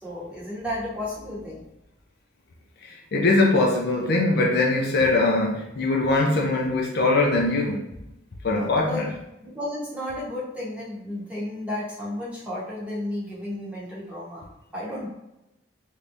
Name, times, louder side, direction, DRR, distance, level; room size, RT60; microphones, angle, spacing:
voice 1, 0.0-1.6 8.5-9.0 9.4-14.5 14.7-15.1, left 1 dB, 5° right, -7 dB, 1.0 m, -33 dB
voice 2, 2.8-7.8 8.4-9.1, left 2 dB, 50° left, 0 dB, 0.4 m, -22 dB
3.3 x 2.7 x 2.5 m, 0.91 s
head